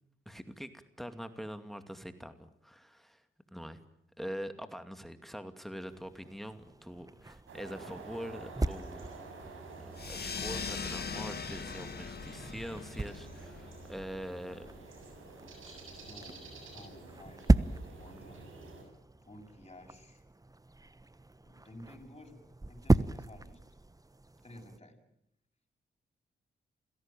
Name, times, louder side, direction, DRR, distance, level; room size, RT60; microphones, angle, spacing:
voice 1, 0.3-3.2 3.5-3.8 4.2-9.0 9.8-14.7, equal, ahead, 9 dB, 2.5 m, -44 dB
sound 1, 5.9-24.8, right 2 dB, 15° right, 1.1 m, -36 dB
sound 2, 7.5-18.8, right 3 dB, 75° right, 7.5 m, -49 dB
sound 3, 9.9-15.0, left 5 dB, 50° left, 1.9 m, -41 dB
voice 2, 16.0-18.5 19.2-20.2 21.4-23.6 24.4-25.0, left 1 dB, 30° left, 1 dB, 7.6 m, -53 dB
28.5 x 17.0 x 9.1 m, 0.79 s
supercardioid pair, 45°, 21 cm